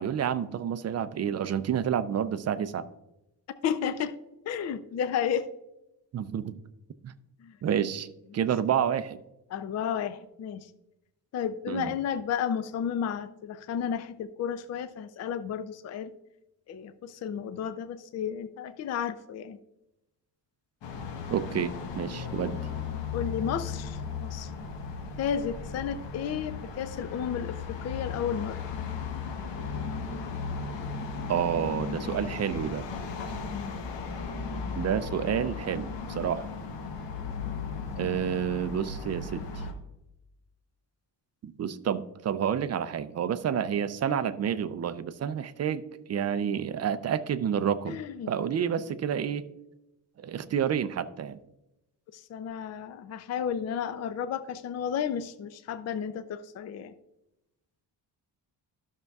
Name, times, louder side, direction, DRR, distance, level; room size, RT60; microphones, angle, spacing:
voice 1, 0.0-2.9 6.1-6.5 7.0-7.1 7.6-8.1 8.3-9.2 11.7-12.0 21.3-22.6 31.3-32.9 34.8-36.5 38.0-39.5 41.4-49.5 50.2-51.4, right 8 dB, 40° right, 13 dB, 0.4 m, -29 dB
voice 2, 3.6-4.1 4.5-5.5 7.4-7.5 9.5-10.6 11.3-16.1 16.7-19.6 23.1-24.5 25.2-27.6 27.8-28.6 33.5-33.8 37.5-37.6 47.9-48.3 52.1-56.9, left 8 dB, 40° left, 11 dB, 0.4 m, -32 dB
sound 1, 20.8-39.7, left 5 dB, 80° left, 1.2 m, -36 dB
13.0 x 6.6 x 2.3 m, 0.91 s
cardioid pair, 145°, 43 cm